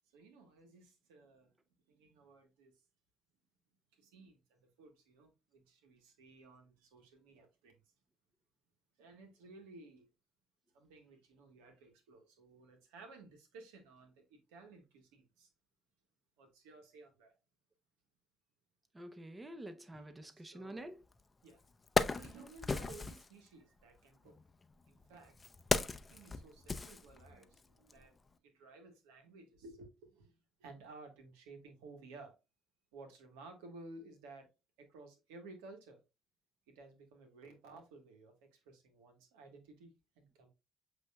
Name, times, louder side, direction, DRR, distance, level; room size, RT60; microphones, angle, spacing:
voice 1, 0.1-1.5 1.9-2.7 3.9-7.8 9.0-10.1 10.7-15.5 16.4-17.3 20.3-20.9 21.4-21.6 22.1-24.4 24.9-25.4 26.0-28.1 28.4-32.3 32.9-34.5 34.8-36.0 36.7-40.5, right 3 dB, 90° right, 1.3 m, -56 dB
voice 2, 18.9-21.0, right 1 dB, 20° right, 0.7 m, -48 dB
Wood, 21.1-21.2 21.6-23.3 24.3-27.6 27.9-28.0, left 3 dB, 30° left, 0.5 m, -36 dB
8.0 x 2.8 x 2.3 m
supercardioid pair, 65°, 0 cm